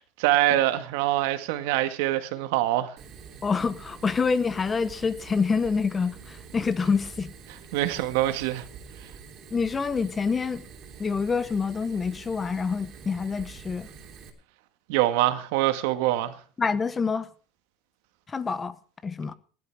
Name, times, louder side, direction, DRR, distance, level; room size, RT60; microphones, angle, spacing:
voice 1, 0.0-3.0 7.7-8.7 14.9-16.4, right 14 dB, 85° right, 1.8 m, -24 dB
Fire, 3.0-14.3, right 6 dB, 35° right, 3.4 m, -46 dB
voice 2, 3.4-7.3 9.5-10.7 11.0-13.9 16.6-17.3 18.3-18.8 19.0-19.3, left 5 dB, 15° left, 0.9 m, -27 dB
16.5 x 11.5 x 4.8 m
cardioid pair, 170°, 0 cm